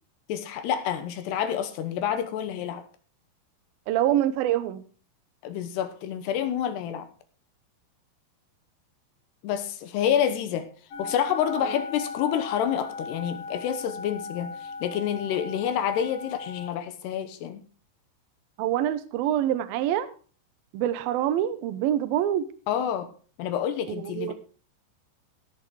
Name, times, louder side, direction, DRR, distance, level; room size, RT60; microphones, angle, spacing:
voice 1, 0.3-2.8 5.4-7.1 9.4-10.7 11.0-17.6 22.7-23.1 23.4-24.3, left 9 dB, 75° left, 9 dB, 2.8 m, -28 dB
voice 2, 3.9-4.8 18.6-20.1 20.7-22.4 23.9-24.3, right 11 dB, 85° right, 12 dB, 2.1 m, -25 dB
sound 1, 10.9-16.7, left 4 dB, 50° left, 2.1 m, -38 dB
17.0 x 6.3 x 4.8 m, 0.39 s
omnidirectional pair, 5.5 m